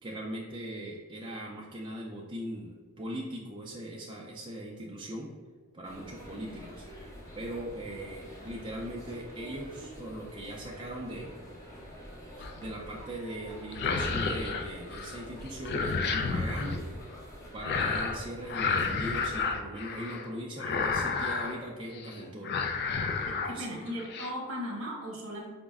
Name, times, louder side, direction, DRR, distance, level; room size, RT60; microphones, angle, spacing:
voice 1, 0.0-5.3 5.7-6.8 7.3-11.4 12.4-16.8 17.5-22.6 23.1-23.7, right 1 dB, 20° right, -3 dB, 0.4 m, -40 dB
sound 1, 5.8-19.5, equal, 15° left, 0.8 m, -47 dB
sound 2, 12.4-12.8 13.6-15.2 15.5-16.8 17.6-18.2 18.5-20.3 20.6-21.6 21.9-22.2 22.4-23.5 23.9-24.3, left 4 dB, 50° left, 0.3 m, -31 dB
voice 2, 23.3-25.5, equal, 65° right, -1 dB, 1.0 m, -37 dB
4.9 x 2.1 x 3.4 m, 1.5 s
head